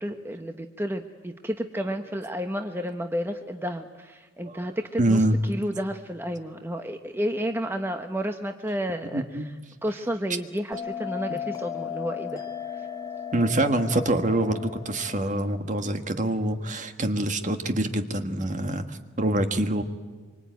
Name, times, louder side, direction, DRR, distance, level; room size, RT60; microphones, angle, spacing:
voice 1, 0.0-9.2 9.8-12.4, equal, 10° right, 6 dB, 0.9 m, -31 dB
voice 2, 5.0-5.4 9.1-9.4 13.3-19.8, right 1 dB, 40° right, 7 dB, 1.5 m, -25 dB
Bell, 10.7-15.8, left 9 dB, 20° left, 1.9 m, -36 dB
25.5 x 24.5 x 9.3 m, 1.4 s
head